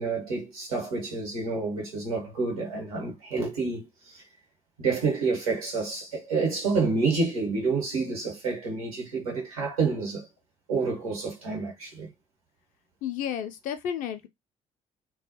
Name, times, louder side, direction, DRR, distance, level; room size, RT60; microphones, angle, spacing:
voice 1, 0.0-4.2 4.8-10.3 10.7-12.1, right 4 dB, 85° right, 1.0 m, -29 dB
voice 2, 13.0-14.3, left 9 dB, 50° left, 0.5 m, -32 dB
2.3 x 2.0 x 2.7 m
figure-of-eight pair, 50°, 18 cm